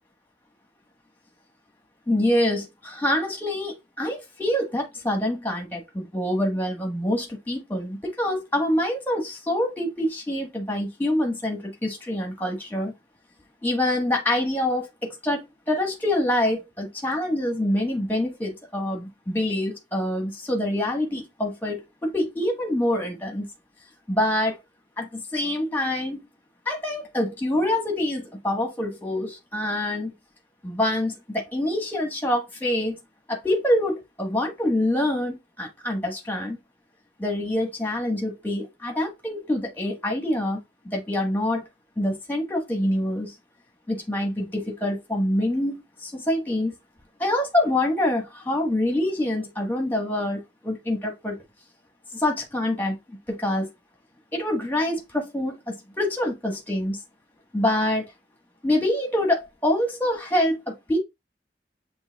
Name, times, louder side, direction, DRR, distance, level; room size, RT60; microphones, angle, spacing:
voice 1, 2.1-12.9 13.6-15.4 15.7-23.5 24.1-24.6 25.0-26.2 26.6-30.1 30.6-33.0 33.3-36.6 37.2-41.7 42.0-43.3 43.9-46.7 47.2-51.4 52.1-53.7 54.3-57.0 57.5-58.1 58.6-61.0, left 1 dB, 10° left, 1.3 m, -26 dB
7.2 x 3.1 x 2.3 m
head